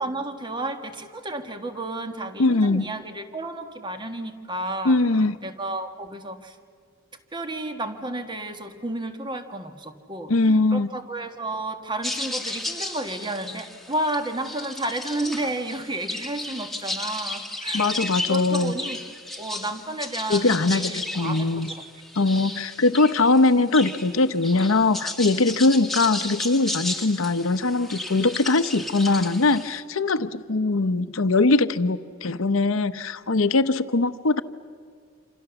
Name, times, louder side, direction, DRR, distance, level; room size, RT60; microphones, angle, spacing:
voice 1, 0.0-5.0 5.4-6.6 7.3-19.0 19.4-21.8, right 1 dB, 25° right, 7 dB, 1.6 m, -32 dB
voice 2, 2.4-2.9 4.8-5.4 10.3-10.9 17.7-18.7 20.3-21.7 22.2-34.4, left 3 dB, 90° left, 12 dB, 0.9 m, -21 dB
sound 1, 12.0-29.8, left 2 dB, ahead, 1.6 m, -34 dB
27.5 x 27.0 x 7.0 m, 2.1 s
head